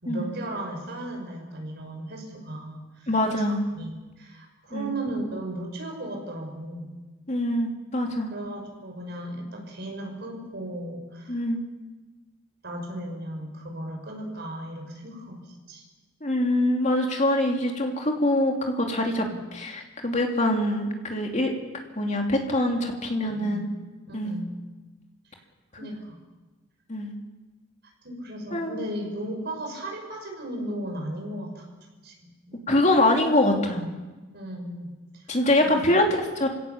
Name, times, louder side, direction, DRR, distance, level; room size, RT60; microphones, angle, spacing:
voice 1, 0.0-3.1 3.4-3.5 3.7-6.9 8.3-11.4 12.6-15.8 19.1-19.4 23.2-23.6 24.1-24.5 25.8-26.2 28.0-31.7 32.0-32.6 34.3-35.3 35.6-35.9, right 1 dB, 55° right, 2 dB, 5.7 m, -36 dB
voice 2, 3.1-3.6 4.7-5.0 7.3-8.3 11.3-11.6 16.2-19.2 19.5-21.5 21.9-23.7 24.1-24.4 26.9-27.1 28.5-28.8 32.7-33.9 35.3-36.5, left 1 dB, 35° left, 2 dB, 2.8 m, -24 dB
28.0 x 17.0 x 7.2 m, 1.2 s
head